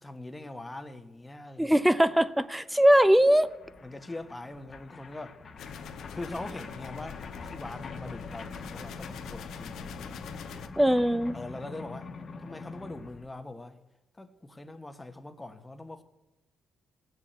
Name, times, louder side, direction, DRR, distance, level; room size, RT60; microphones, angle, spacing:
voice 1, 0.0-1.8 3.8-5.4 6.1-10.1 11.3-12.1 12.4-13.8 14.1-16.0, left 2 dB, 15° left, 1.3 m, -42 dB
voice 2, 1.6-3.5 10.8-11.4, equal, 5° right, 0.6 m, -21 dB
sound 1, 2.1-2.2 2.4-13.3, left 4 dB, 45° left, 1.3 m, -45 dB
sound 2, 5.6-10.7, left 6 dB, 80° left, 1.2 m, -43 dB
18.5 x 7.2 x 8.1 m
cardioid pair, 90°, 0 cm